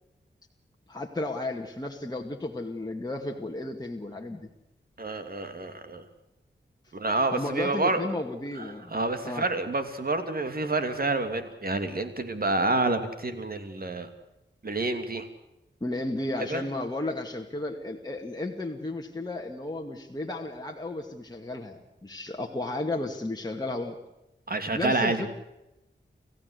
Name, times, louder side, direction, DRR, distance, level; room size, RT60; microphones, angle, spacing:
voice 1, 0.9-4.5 7.3-8.9 9.2-9.5 15.8-24.0 24.7-25.3, left 2 dB, 20° left, 1 dB, 2.3 m, -33 dB
voice 2, 5.0-6.0 6.9-8.0 8.6-14.1 14.6-15.3 16.5-16.6 24.5-25.3, right 2 dB, 50° right, 8 dB, 2.9 m, -28 dB
28.5 x 15.5 x 8.3 m, 0.93 s
wide cardioid pair, 65°, 19 cm